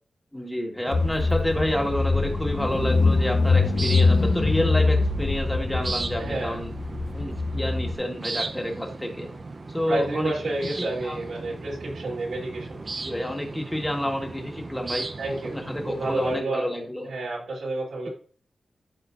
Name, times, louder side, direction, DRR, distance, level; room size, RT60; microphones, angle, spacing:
voice 1, 0.3-6.7 7.1-9.3 9.7-10.3 11.0-11.2 13.0-15.1 15.5-17.1, left 1 dB, 5° left, 2 dB, 1.6 m, -29 dB
sound 1, 0.8-16.4, right 3 dB, 40° right, 0.7 m, -37 dB
Car / Engine, 0.9-7.9, left 3 dB, 50° left, 0.7 m, -23 dB
voice 2, 6.2-6.6 9.9-13.0 13.5-13.6 15.2-16.6 17.0-18.1, right 2 dB, 90° right, -4 dB, 3.3 m, -30 dB
12.5 x 4.3 x 2.6 m, 0.43 s
wide cardioid pair, 115°, 0 cm